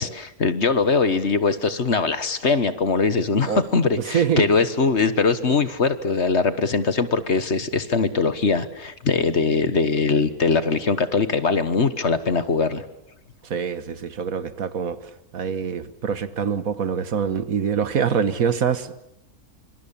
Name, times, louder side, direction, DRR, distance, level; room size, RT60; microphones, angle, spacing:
voice 1, 0.0-12.8, left 4 dB, 50° left, 1.6 m, -21 dB
voice 2, 4.0-4.5 13.4-18.9, right 7 dB, 70° right, 1.7 m, -25 dB
26.0 x 25.5 x 7.3 m
omnidirectional pair, 1.5 m